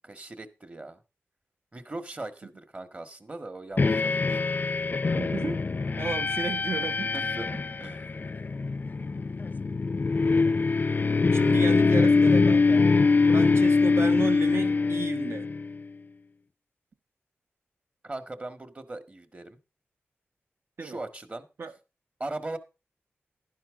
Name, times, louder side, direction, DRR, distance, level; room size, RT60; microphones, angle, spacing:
voice 1, 0.0-1.0 1.7-4.4 6.3-6.4 7.1-7.5 7.8-8.1 18.0-19.6 20.8-21.5 22.2-22.6, right 2 dB, 30° right, 1.7 m, -39 dB
sound 1, 3.8-15.8, left 4 dB, 40° left, 0.5 m, -23 dB
voice 2, 5.2-5.6 6.0-7.1 11.3-12.9 13.3-15.5 20.8-21.0 21.6-21.7, right 4 dB, 65° right, 1.4 m, -33 dB
11.5 x 10.5 x 3.8 m
cardioid pair, 65°, 5 cm